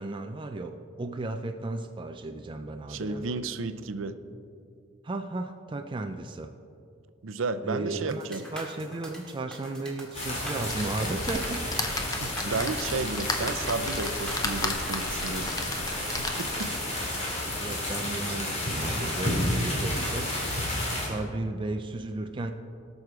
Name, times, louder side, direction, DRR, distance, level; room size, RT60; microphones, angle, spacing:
voice 1, 0.0-3.4 5.0-6.5 7.6-11.7 17.6-20.4 21.0-22.5, right 2 dB, 25° right, 5 dB, 0.4 m, -34 dB
voice 2, 2.9-4.2 7.2-8.4 12.2-15.5 16.2-16.7 17.5-17.6, right 3 dB, 85° right, 11 dB, 0.6 m, -32 dB
sound 1, 8.1-15.6, right 1 dB, 5° left, 2.0 m, -43 dB
sound 2, 10.1-21.1, left 1 dB, 35° left, 3.0 m, -31 dB
sound 3, 10.7-16.9 17.4-17.5 17.8-17.9, left 2 dB, 20° left, 0.8 m, -35 dB
18.5 x 6.5 x 4.8 m, 2.5 s
head